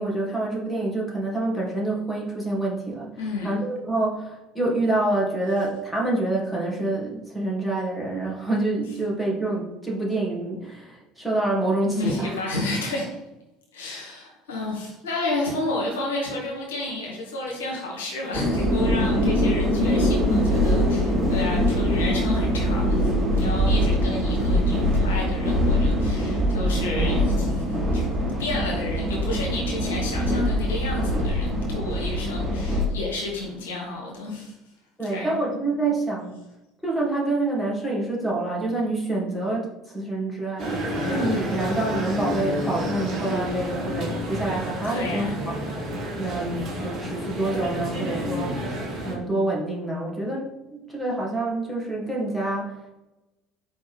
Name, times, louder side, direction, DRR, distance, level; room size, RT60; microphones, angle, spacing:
voice 1, 0.0-3.1 3.4-12.3 35.0-36.3 36.8-40.8 41.1-45.5 46.2-48.6 49.0-52.9, right 2 dB, 5° left, -4 dB, 1.6 m, -27 dB
voice 2, 3.2-3.6 11.9-13.2 13.7-28.1 28.4-34.5 35.1-35.4 44.9-45.4, left 2 dB, 70° left, -2 dB, 1.1 m, -31 dB
sound 1, 18.3-32.8, equal, 25° right, 1.2 m, -23 dB
sound 2, 40.6-49.1, equal, 45° right, 1.4 m, -30 dB
4.4 x 3.4 x 3.3 m, 0.96 s
figure-of-eight pair, 60°, 0 cm